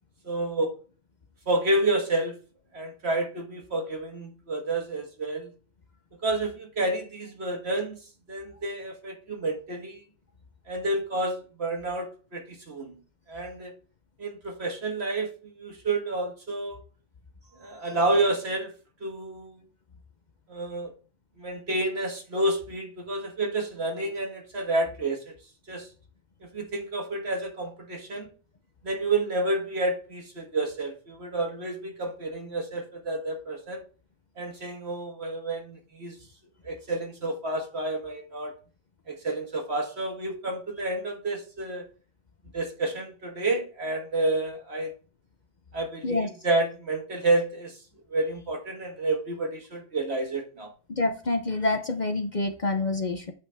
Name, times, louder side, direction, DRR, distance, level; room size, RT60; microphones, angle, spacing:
voice 1, 0.2-0.8 1.5-2.4 2.7-5.5 6.2-8.0 8.3-10.0 10.7-13.0 13.3-13.7 14.2-16.8 17.6-18.7 19.0-19.6 20.5-20.9 21.4-25.3 25.7-25.9 26.4-28.3 28.8-33.8 34.4-36.2 36.6-38.5 39.1-41.9 42.5-44.9 45.7-47.8 48.1-50.7, right 2 dB, 60° right, 3 dB, 1.8 m, -29 dB
voice 2, 50.9-53.3, left 2 dB, 40° left, 5 dB, 0.9 m, -27 dB
8.7 x 5.7 x 3.4 m, 0.37 s
omnidirectional pair, 1.3 m